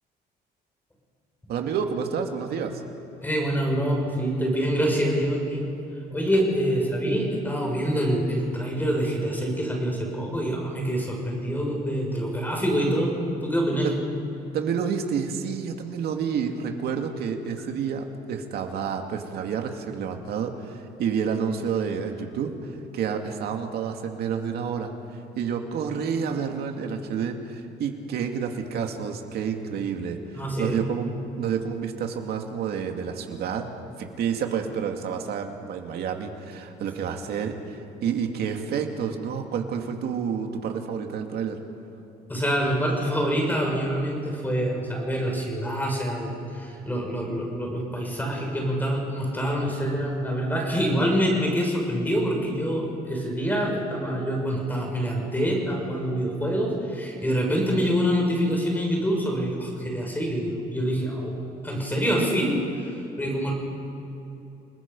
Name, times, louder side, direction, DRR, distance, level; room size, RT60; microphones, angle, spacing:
voice 1, 1.5-2.8 13.8-14.0 14.5-31.1 31.4-33.7 34.0-41.6, right 7 dB, 70° right, 4 dB, 2.4 m, -29 dB
voice 2, 3.2-5.6 6.1-13.1 13.4-13.9 29.8-29.9 30.3-30.8 42.3-61.3 61.6-63.5, equal, 10° left, 0 dB, 5.9 m, -26 dB
29.5 x 20.0 x 5.5 m, 2.9 s
cardioid pair, 140°, 17 cm